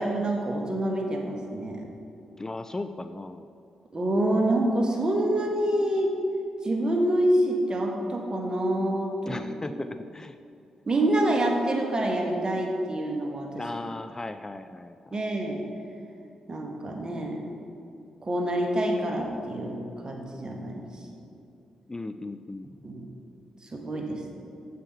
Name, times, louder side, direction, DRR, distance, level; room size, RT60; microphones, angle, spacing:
voice 1, 0.0-1.9 3.9-6.1 6.6-9.8 10.8-13.6 15.1-15.6 16.5-17.5 18.2-20.8 22.8-23.1 23.6-24.4, right 1 dB, 35° right, 1 dB, 1.8 m, -27 dB
voice 2, 2.4-3.5 9.3-10.4 13.5-15.2 21.9-22.7, left 2 dB, 25° left, 9 dB, 0.4 m, -37 dB
9.2 x 7.7 x 4.5 m, 2.6 s
hypercardioid pair, 45°, 2 cm